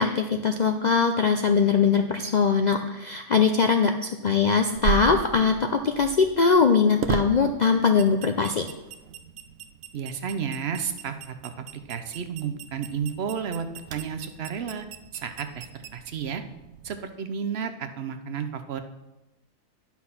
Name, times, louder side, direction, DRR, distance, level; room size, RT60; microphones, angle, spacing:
voice 1, 0.0-8.6, left 5 dB, 65° left, 5 dB, 0.4 m, -21 dB
sound 1, 4.8-17.0, right 8 dB, 80° right, 1.1 m, -37 dB
voice 2, 9.9-11.5 11.9-14.9 15.1-15.6 15.9-16.4 16.8-18.8, right 7 dB, 55° right, 9 dB, 0.9 m, -32 dB
9.6 x 5.9 x 5.7 m, 0.99 s
omnidirectional pair, 1.4 m